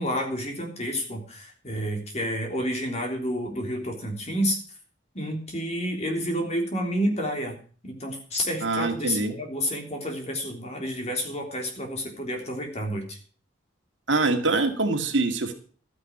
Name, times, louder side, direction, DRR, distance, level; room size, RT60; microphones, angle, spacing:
voice 1, 0.0-4.6 5.2-13.2, equal, 35° left, 3 dB, 3.4 m, -30 dB
voice 2, 8.6-9.3 14.1-15.5, right 3 dB, 70° right, 4 dB, 2.3 m, -24 dB
13.0 x 9.8 x 6.1 m, 0.42 s
head